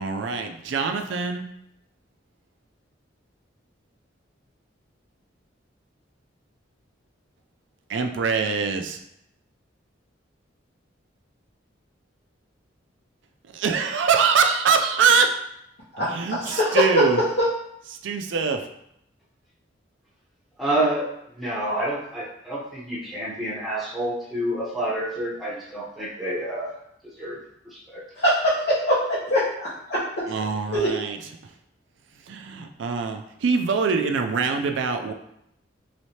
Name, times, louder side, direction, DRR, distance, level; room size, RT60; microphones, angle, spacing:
voice 1, 0.0-1.5 7.9-9.0 13.5-15.3 16.0-17.2 18.0-18.7 30.3-31.2 32.3-35.1, right 5 dB, 75° right, 5 dB, 0.4 m, -23 dB
voice 2, 15.9-16.8 17.4-17.5 28.2-30.0 30.7-30.9, left 1 dB, 65° left, -10 dB, 0.9 m, -23 dB
voice 3, 20.6-21.1 21.4-26.7 27.0-27.4 27.6-28.0, right 1 dB, ahead, -7 dB, 0.7 m, -28 dB
3.2 x 3.1 x 2.8 m, 0.77 s
head